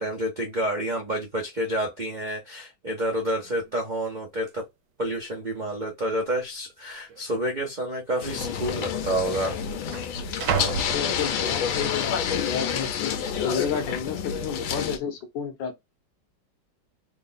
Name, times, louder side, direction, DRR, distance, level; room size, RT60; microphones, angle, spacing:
voice 1, 0.0-4.7 5.0-9.6, right 1 dB, 55° right, 0.5 m, -29 dB
sound 1, 3.0-3.1 3.4-3.8 4.5-4.6 5.3-5.8 6.1-6.2 7.1-7.3 8.3-8.4 8.6-11.8 12.3-12.7, right 6 dB, 80° right, 1.4 m, -34 dB
sound 2, 8.2-15.0, left 7 dB, 85° left, 1.5 m, -28 dB
voice 2, 10.9-15.8, left 7 dB, 70° left, 1.3 m, -31 dB
3.6 x 2.1 x 3.9 m
omnidirectional pair, 2.2 m